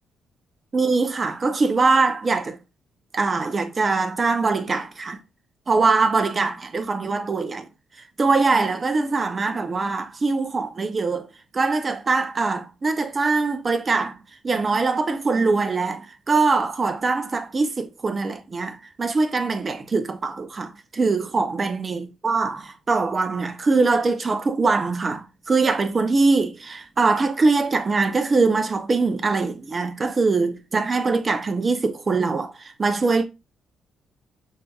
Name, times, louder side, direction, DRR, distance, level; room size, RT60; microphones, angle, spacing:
voice 1, 0.7-2.6 3.1-5.2 5.7-7.7 8.2-11.3 11.5-14.2 14.4-33.2, right 3 dB, 35° right, 0.6 m, -22 dB
6.1 x 2.7 x 2.3 m
cardioid pair, 90°, 0 cm